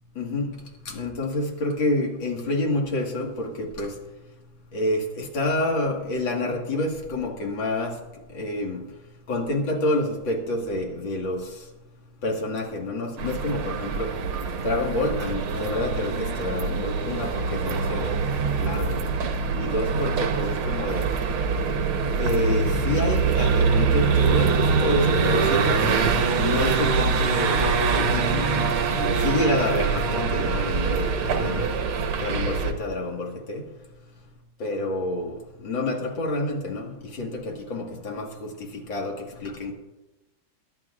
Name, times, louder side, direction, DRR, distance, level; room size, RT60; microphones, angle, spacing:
voice 1, 0.2-3.9 4.7-7.9 8.3-8.8 9.3-11.5 12.2-14.1 14.6-18.2 18.6-19.0 19.6-21.1 22.2-27.6 27.9-28.7 28.9-31.7 32.2-33.6 34.6-38.5 38.9-39.7, left 2 dB, 60° left, 1 dB, 2.5 m, -28 dB
sound 1, 13.2-32.7, right 5 dB, 75° right, 1.9 m, -24 dB
23.0 x 10.5 x 2.4 m, 1.1 s
omnidirectional pair, 2.3 m